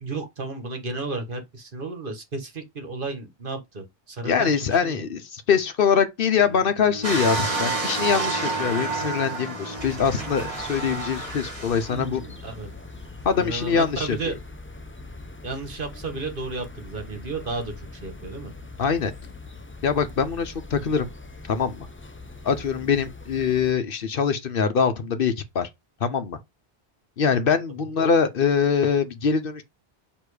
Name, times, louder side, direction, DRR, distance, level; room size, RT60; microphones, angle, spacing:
voice 1, 0.0-5.0 11.9-12.7 13.3-14.3 15.4-18.5, right 3 dB, 55° right, 1.5 m, -33 dB
voice 2, 4.2-12.2 13.2-14.1 18.8-19.1 19.8-21.1 21.5-21.9 22.4-25.7 26.0-26.4 27.2-29.6, left 6 dB, 60° left, 0.9 m, -23 dB
Bowed string instrument, 6.3-10.6, left 3 dB, 40° left, 1.1 m, -39 dB
sound 1, 7.0-12.0 12.6-12.7, right 3 dB, 30° right, 1.9 m, -29 dB
sound 2, 9.8-23.7, left 3 dB, 15° left, 0.4 m, -42 dB
6.6 x 3.0 x 4.8 m
omnidirectional pair, 1.1 m